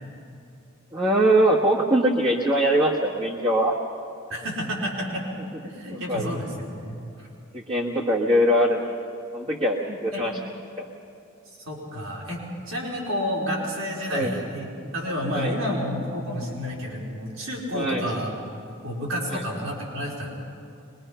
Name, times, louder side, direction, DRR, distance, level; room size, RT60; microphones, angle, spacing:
voice 1, 0.9-3.7 6.1-6.3 7.5-8.8 9.3-10.3 10.8-10.9 14.1-14.3 15.3-15.6 17.7-18.1 19.3-19.4, right 1 dB, 25° right, -3 dB, 1.4 m, -22 dB
voice 2, 4.3-5.2 5.6-7.3 10.1-10.2 11.7-18.3 18.8-20.3, equal, 65° right, -3 dB, 4.4 m, -30 dB
24.0 x 22.0 x 5.7 m, 2.7 s
head